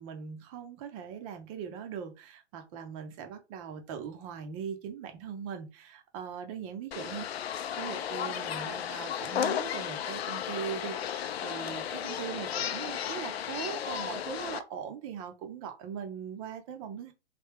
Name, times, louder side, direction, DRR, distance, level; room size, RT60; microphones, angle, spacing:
voice 1, 0.0-17.1, right 7 dB, 30° right, 0.7 m, -40 dB
sound 1, 6.9-14.6, left 9 dB, 60° left, 0.5 m, -34 dB
3.3 x 2.8 x 3.3 m
hypercardioid pair, 125°, 35 cm